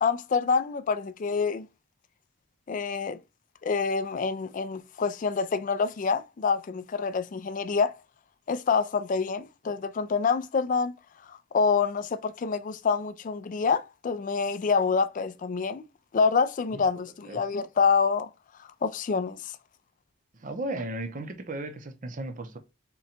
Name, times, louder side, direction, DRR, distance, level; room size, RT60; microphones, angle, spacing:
voice 1, 0.0-1.7 2.7-3.2 3.6-7.9 8.5-10.9 11.3-15.8 16.1-18.3 18.8-19.5, left 5 dB, 40° left, 0.3 m, -27 dB
voice 2, 20.3-22.6, right 2 dB, 35° right, 0.5 m, -35 dB
3.7 x 2.2 x 4.2 m
head